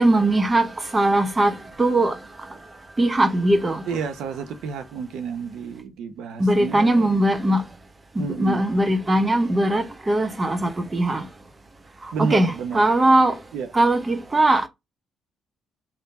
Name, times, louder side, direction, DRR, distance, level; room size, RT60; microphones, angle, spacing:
voice 1, 0.0-2.2 3.0-3.9 6.4-7.6 8.2-11.3 12.2-13.4 13.7-14.7, right 1 dB, 25° right, 0.8 m, -20 dB
voice 2, 3.9-7.1 8.2-8.7 12.1-12.8 13.5-13.7, right 6 dB, 85° right, 0.8 m, -30 dB
3.6 x 2.7 x 4.0 m
cardioid pair, 90°, 0 cm